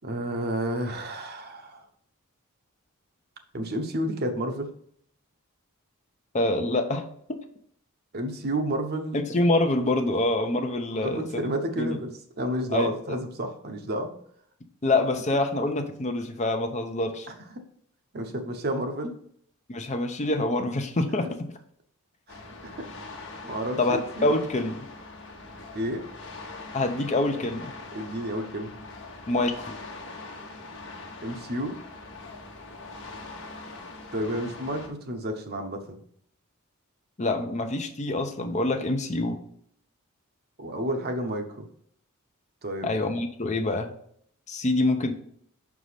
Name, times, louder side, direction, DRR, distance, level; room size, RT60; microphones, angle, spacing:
voice 1, 0.0-1.8 3.5-4.7 8.1-9.2 11.0-12.1 12.4-14.1 17.3-17.6 18.1-19.1 22.3-22.9 23.4-24.4 25.7-26.0 27.9-28.7 31.2-31.8 34.1-36.0 40.6-41.7 42.6-42.9, right 1 dB, 45° right, 5 dB, 0.9 m, -31 dB
voice 2, 6.3-7.4 9.1-11.4 11.8-11.9 12.7-12.9 14.8-17.3 19.7-21.3 23.8-24.9 26.7-27.7 29.3-29.7 37.2-39.4 42.8-43.9 44.5-45.1, left 2 dB, 35° left, 6 dB, 0.7 m, -26 dB
sound 1, 22.3-34.9, left 3 dB, 60° left, 1.1 m, -42 dB
6.2 x 4.8 x 4.1 m, 0.64 s
head